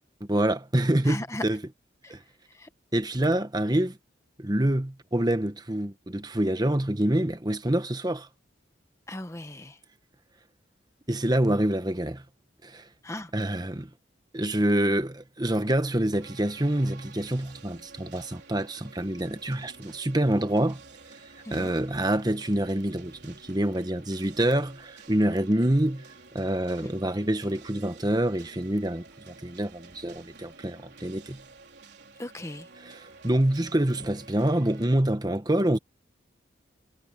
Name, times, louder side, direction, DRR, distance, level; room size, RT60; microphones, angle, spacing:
voice 1, 0.2-1.6 2.1-2.2 2.9-4.0 4.4-8.3 11.1-12.2 12.6-12.9 13.3-13.9 14.3-20.8 21.5-26.0 26.3-31.4 32.8-35.8, right 1 dB, 20° right, 1.2 m, -26 dB
voice 2, 1.1-1.4 2.0-2.1 2.5-2.7 9.1-9.8 13.0-13.3 21.4-21.7 26.8-26.9 32.2-32.7, left 1 dB, 15° left, 1.0 m, -37 dB
sound 1, 16.2-34.9, right 4 dB, 55° right, 4.8 m, -51 dB
head